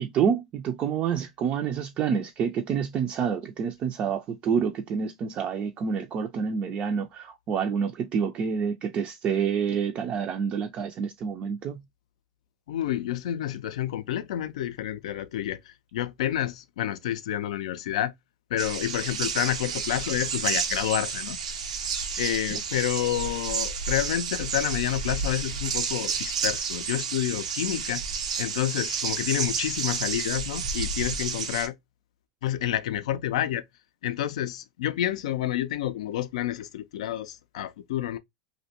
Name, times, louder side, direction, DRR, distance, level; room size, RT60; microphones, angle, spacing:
voice 1, 0.0-11.8, right 7 dB, 35° right, 0.3 m, -28 dB
voice 2, 12.7-18.1 18.5-21.4 22.2-28.0 28.4-31.7 32.4-33.6 34.0-38.2, left 12 dB, 70° left, 0.4 m, -29 dB
sound 1, 18.6-31.7, right 6 dB, 90° right, 0.5 m, -31 dB
2.5 x 2.1 x 2.7 m
hypercardioid pair, 120°, 4 cm